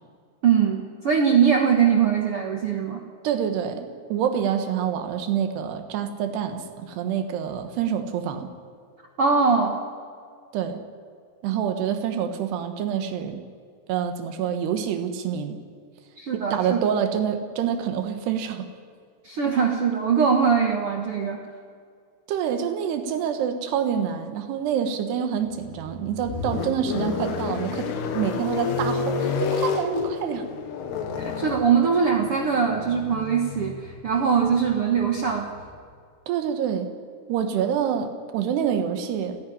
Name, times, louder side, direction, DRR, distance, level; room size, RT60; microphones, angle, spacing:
voice 1, 0.4-3.0 9.2-9.8 16.2-16.8 19.2-21.4 31.2-35.5, right 6 dB, 65° right, 2 dB, 1.4 m, -22 dB
voice 2, 3.2-8.5 10.5-10.8 11.4-13.4 13.9-15.6 16.3-18.7 22.3-30.5 36.3-36.9 37.3-39.4, right 8 dB, 85° right, 7 dB, 3.5 m, -27 dB
sound 1, 25.5-35.8, left 5 dB, 80° left, 3.7 m, -30 dB
29.0 x 11.0 x 10.0 m, 2.1 s
omnidirectional pair, 4.6 m